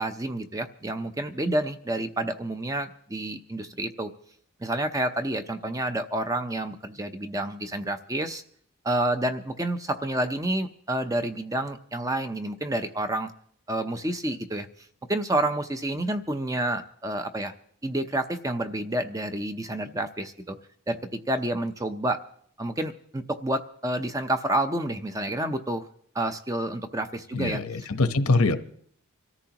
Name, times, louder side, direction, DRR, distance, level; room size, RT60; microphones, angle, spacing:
voice 1, 0.0-4.1 4.6-8.4 8.8-13.3 13.7-14.7 15.1-17.5 17.8-20.6 20.9-22.2 22.6-25.9 26.1-27.6, right 1 dB, 15° right, 0.6 m, -29 dB
voice 2, 27.3-28.6, left 3 dB, 80° left, 1.0 m, -23 dB
25.5 x 14.0 x 2.9 m
head